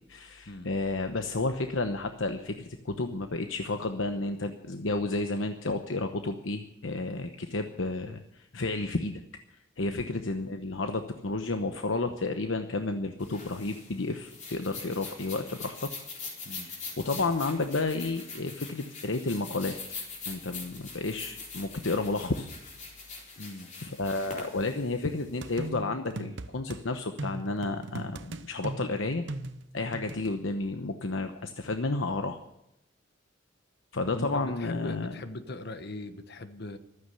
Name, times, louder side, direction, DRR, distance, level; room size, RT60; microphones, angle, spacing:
voice 1, 0.1-9.2 9.5-15.9 16.5-19.8 20.3-22.5 23.8-29.2 29.7-32.4 33.9-35.1, left 3 dB, 75° left, 7 dB, 1.0 m, -31 dB
sound 1, 13.2-25.6, left 4 dB, 40° left, 3.8 m, -43 dB
voice 2, 16.4-16.8 23.4-23.7 34.1-36.8, left 2 dB, 55° left, 10 dB, 1.2 m, -40 dB
sound 2, 25.4-26.8 27.2-30.3, right 2 dB, 65° right, 0.9 m, -39 dB
15.0 x 13.0 x 6.8 m, 0.84 s
head